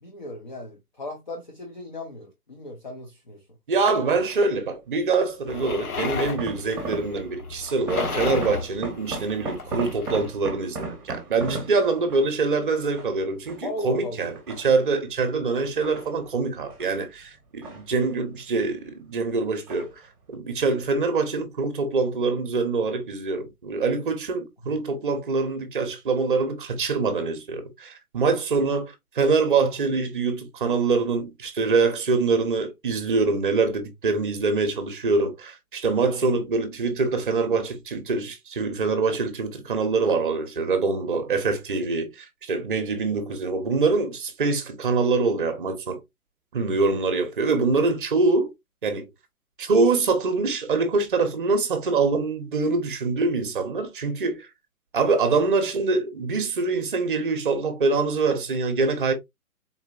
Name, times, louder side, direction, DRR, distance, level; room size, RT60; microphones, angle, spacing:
voice 1, 0.0-3.4 13.6-14.3 24.6-24.8 46.7-47.0, left 1 dB, 35° left, 0.5 m, -37 dB
voice 2, 3.7-20.0 20.3-46.0 46.5-48.5 48.8-49.1 49.6-54.5 54.9-59.1, right 4 dB, 35° right, 0.8 m, -24 dB
sound 1, 4.2-4.6 5.5-7.4 7.7-12.4 12.9-13.8 14.2-15.1 15.6-16.9 17.2-18.4 18.6-19.2 19.7-20.0 20.3-20.4, right 3 dB, 5° right, 0.8 m, -37 dB
sound 2, 5.5-10.3, left 5 dB, 80° left, 1.1 m, -33 dB
3.9 x 2.5 x 2.4 m
hypercardioid pair, 155°, 45 cm